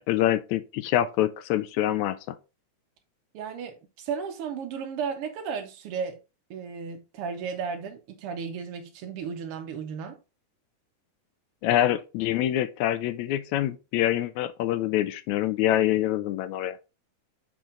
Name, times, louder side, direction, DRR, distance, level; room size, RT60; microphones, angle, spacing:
voice 1, 0.1-2.4 11.6-16.8, left 13 dB, 80° left, 1.8 m, -25 dB
voice 2, 3.3-6.2 6.5-10.2, right 6 dB, 75° right, 1.3 m, -34 dB
5.9 x 5.2 x 3.7 m
omnidirectional pair, 3.4 m